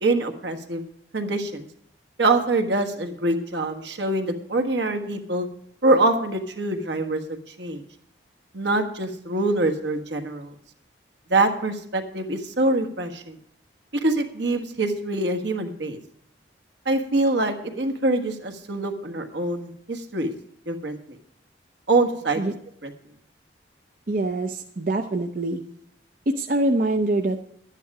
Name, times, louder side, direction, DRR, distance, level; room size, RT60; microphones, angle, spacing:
voice 1, 0.0-0.8 1.1-1.6 2.2-5.5 5.8-7.8 8.5-10.5 11.3-13.4 14.0-16.0 16.8-20.3 20.7-21.0 21.9-22.4 22.8-22.9, right 2 dB, 70° right, 5 dB, 1.4 m, -24 dB
voice 2, 24.1-25.6 26.3-27.4, right 2 dB, 45° right, 4 dB, 0.6 m, -24 dB
12.0 x 9.9 x 4.8 m, 0.68 s
head